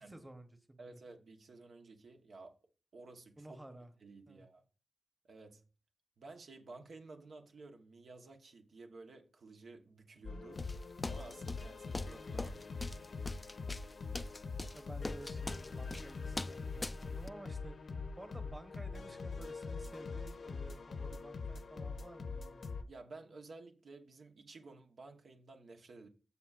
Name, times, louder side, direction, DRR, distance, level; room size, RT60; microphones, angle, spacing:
voice 1, 0.0-1.0 3.4-3.9 4.3-4.4 14.7-17.8 18.2-22.6, right 1 dB, 15° right, 1.1 m, -53 dB
voice 2, 0.8-2.6 2.9-3.6 4.0-4.6 5.2-5.6 6.2-10.6 11.1-12.6 22.9-26.1, right 3 dB, 75° right, 1.1 m, -53 dB
sound 1, 10.2-22.8, left 4 dB, 60° left, 0.8 m, -43 dB
sound 2, 10.6-17.3, left 2 dB, 25° left, 0.4 m, -43 dB
15.5 x 5.5 x 2.4 m
wide cardioid pair, 100°, 0 cm